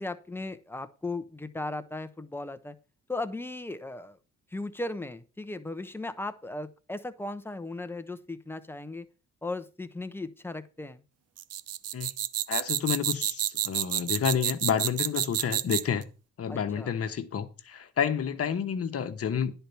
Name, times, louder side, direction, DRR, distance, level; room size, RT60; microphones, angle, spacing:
voice 1, 0.0-2.7 3.1-4.2 4.5-9.1 9.4-11.0 16.5-17.0, left 2 dB, 5° left, 0.9 m, -37 dB
sound 1, 11.4-16.0, right 11 dB, 55° right, 0.5 m, -29 dB
voice 2, 12.5-16.0 16.4-19.5, left 8 dB, 50° left, 1.2 m, -29 dB
10.5 x 4.5 x 6.9 m
cardioid pair, 90°, 30 cm